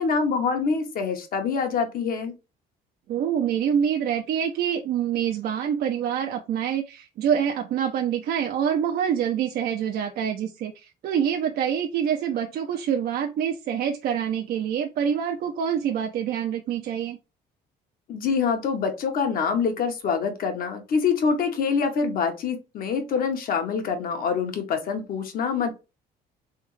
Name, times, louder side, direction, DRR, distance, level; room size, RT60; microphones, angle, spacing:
voice 1, 0.0-2.3 18.1-25.7, left 5 dB, 60° left, 5 dB, 1.2 m, -25 dB
voice 2, 3.1-17.2, right 8 dB, 65° right, 4 dB, 0.6 m, -26 dB
3.5 x 3.4 x 3.2 m, 0.28 s
cardioid pair, 110°, 17 cm